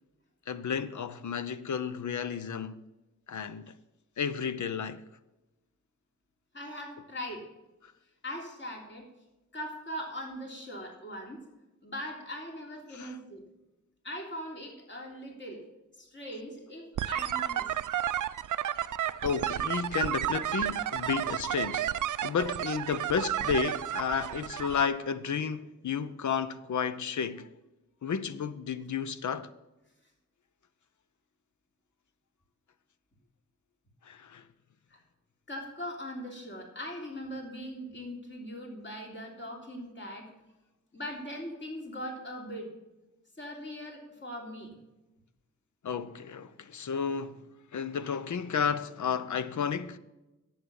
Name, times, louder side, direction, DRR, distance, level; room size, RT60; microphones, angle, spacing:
voice 1, 0.5-2.8 3.3-3.7 4.2-5.0 12.9-13.2 19.2-21.9 22.2-27.5 28.0-29.5 34.1-34.4 45.8-47.4 47.7-50.0, left 6 dB, 75° left, 0.8 m, -32 dB
voice 2, 6.5-7.5 8.2-9.1 9.5-11.4 11.8-13.4 14.0-15.6 15.9-17.7 34.9-35.0 35.5-40.3 40.9-42.7 43.4-44.7, equal, 40° left, 3.4 m, -40 dB
sound 1, 17.0-24.9, right 11 dB, 85° right, 0.5 m, -32 dB
10.5 x 8.0 x 7.1 m
cardioid pair, 70°, 30 cm